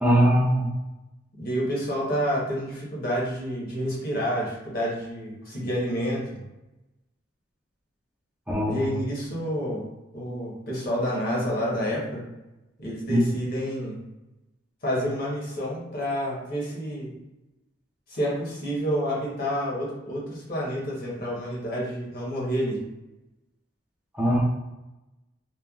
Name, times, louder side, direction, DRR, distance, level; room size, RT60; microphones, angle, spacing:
voice 1, 0.0-0.7 8.5-8.9 13.1-13.3 24.1-24.4, equal, 5° right, -5 dB, 0.4 m, -21 dB
voice 2, 1.4-6.4 8.6-9.9 10.1-12.3 12.8-14.0 14.8-17.1 18.1-22.8, equal, 50° left, -4 dB, 1.0 m, -29 dB
3.1 x 2.2 x 2.3 m, 0.99 s
head